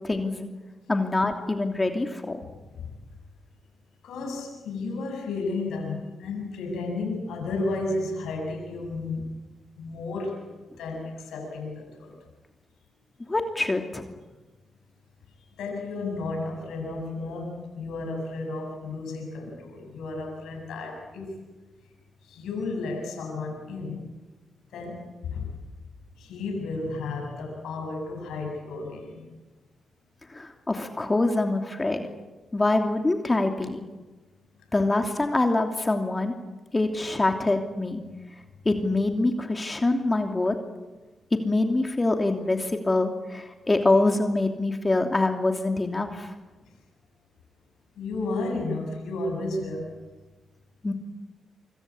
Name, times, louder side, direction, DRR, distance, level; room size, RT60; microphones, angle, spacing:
voice 1, 0.0-0.5 0.9-2.4 13.3-14.1 30.3-32.1 32.5-33.8 34.7-36.3 36.7-38.0 38.6-40.6 41.3-46.3 50.8-50.9, left 2 dB, 25° left, 5 dB, 2.8 m, -25 dB
voice 2, 4.0-9.3 9.8-10.4 10.8-12.2 15.6-21.4 22.2-24.2 24.7-25.5 26.2-29.2 48.0-49.9, left 3 dB, 80° left, 2 dB, 7.6 m, -33 dB
26.0 x 25.0 x 8.6 m, 1.2 s
supercardioid pair, 45°, 0 cm